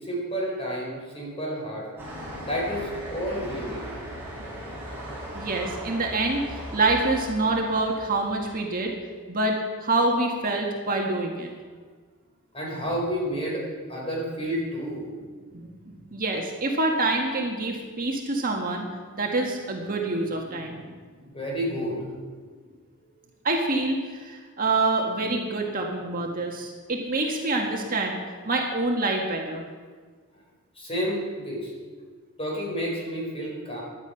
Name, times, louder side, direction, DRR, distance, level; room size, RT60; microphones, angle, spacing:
voice 1, 0.0-1.9 2.4-4.0 12.5-13.6 13.9-15.1 21.3-22.0 30.8-31.7 32.4-33.8, equal, 25° left, -2 dB, 4.7 m, -30 dB
sound 1, 2.0-8.5, equal, 10° right, 5.1 m, -38 dB
voice 2, 5.3-8.9 9.3-11.5 15.6-15.7 16.1-18.9 19.1-20.8 23.4-28.2 28.4-29.6, right 2 dB, 40° right, 1 dB, 1.7 m, -26 dB
16.5 x 11.0 x 5.8 m, 1.5 s
head